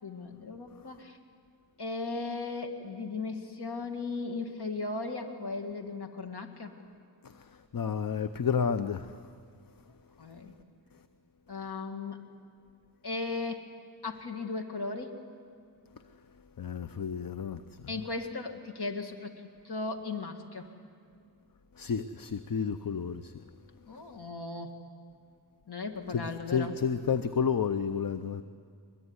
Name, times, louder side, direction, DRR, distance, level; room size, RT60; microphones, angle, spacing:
voice 1, 0.0-1.2 1.8-6.7 10.2-10.5 11.5-12.2 13.0-13.6 14.0-15.2 17.9-20.7 23.9-24.7 25.7-26.8, left 3 dB, 70° left, 2.2 m, -37 dB
voice 2, 7.2-9.2 16.6-17.9 21.8-23.3 26.1-28.4, left 6 dB, 55° left, 0.8 m, -31 dB
22.5 x 22.0 x 9.7 m
wide cardioid pair, 55°, 41 cm